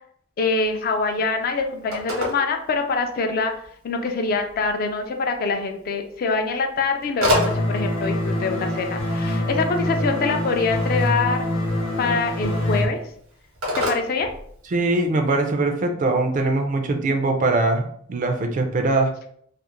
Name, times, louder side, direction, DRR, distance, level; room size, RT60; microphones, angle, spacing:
voice 1, 0.4-3.5 3.8-11.4 12.0-13.0 13.7-14.3, left 4 dB, 45° left, 5 dB, 0.3 m, -24 dB
Telephone, 0.6-15.1, left 1 dB, 85° right, 0.9 m, -33 dB
sound 1, 7.3-12.9, left 1 dB, 75° left, 0.7 m, -25 dB
voice 2, 14.7-17.8 18.1-19.1, right 2 dB, 40° right, 5 dB, 0.3 m, -21 dB
2.4 x 2.0 x 2.9 m, 0.64 s
head